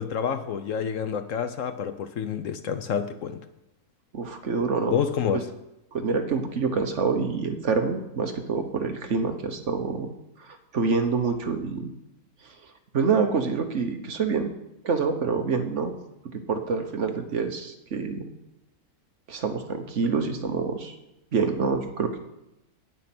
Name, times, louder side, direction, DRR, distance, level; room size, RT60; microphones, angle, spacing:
voice 1, 0.0-3.4 4.9-5.5, left 7 dB, 65° left, 10 dB, 1.0 m, -28 dB
voice 2, 4.1-5.0 5.3-5.4 5.9-10.1 10.4-11.9 12.4-12.5 12.9-14.5 14.8-15.9 16.3-18.3 19.3-20.9 21.3-22.2, right 5 dB, 55° right, 6 dB, 1.2 m, -26 dB
9.6 x 9.2 x 5.9 m, 0.89 s
omnidirectional pair, 1.6 m